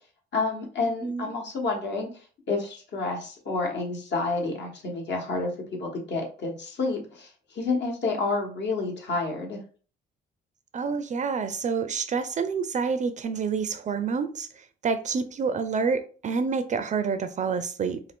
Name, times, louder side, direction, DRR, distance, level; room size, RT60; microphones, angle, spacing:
voice 1, 0.3-2.1 2.5-5.5 5.8-9.6, left 3 dB, 60° left, 1 dB, 1.1 m, -29 dB
voice 2, 10.7-14.5 14.8-18.0, right 5 dB, 40° right, 11 dB, 0.4 m, -28 dB
2.6 x 2.3 x 3.5 m, 0.40 s
cardioid pair, 90°, 20 cm